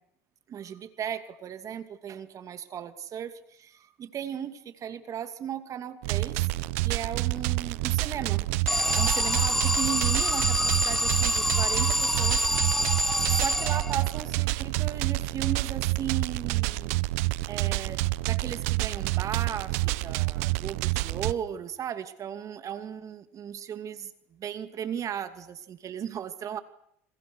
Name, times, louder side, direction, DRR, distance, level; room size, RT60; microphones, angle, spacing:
voice 1, 0.5-6.5 6.8-12.4 13.3-17.0 17.5-24.1 24.4-26.6, right 9 dB, 45° right, 9 dB, 2.6 m, -36 dB
sound 1, 6.0-21.3, right 21 dB, 75° right, 1.1 m, -28 dB
Alarm, 8.7-14.2, equal, 5° left, 1.0 m, -26 dB
29.0 x 27.0 x 6.4 m, 0.72 s
hypercardioid pair, 85°, 8 cm